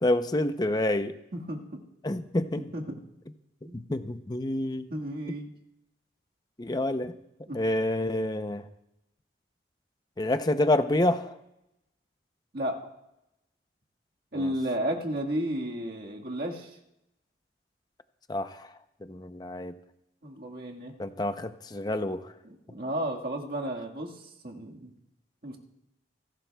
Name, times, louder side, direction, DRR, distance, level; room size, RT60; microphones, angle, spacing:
voice 1, 0.0-1.2 2.0-2.7 3.7-4.9 6.6-7.1 7.5-8.7 10.2-11.4 14.4-14.5 18.3-18.7 19.0-19.7 21.0-22.3, left 1 dB, 25° left, 10 dB, 0.6 m, -28 dB
voice 2, 1.3-1.8 2.7-3.0 3.6-3.9 4.9-5.5 7.5-7.6 12.5-12.8 14.3-16.7 20.2-20.9 22.4-24.1 24.4-24.9 25.4-25.6, right 1 dB, 55° right, 0 dB, 1.6 m, -33 dB
27.5 x 11.5 x 2.3 m, 0.87 s
head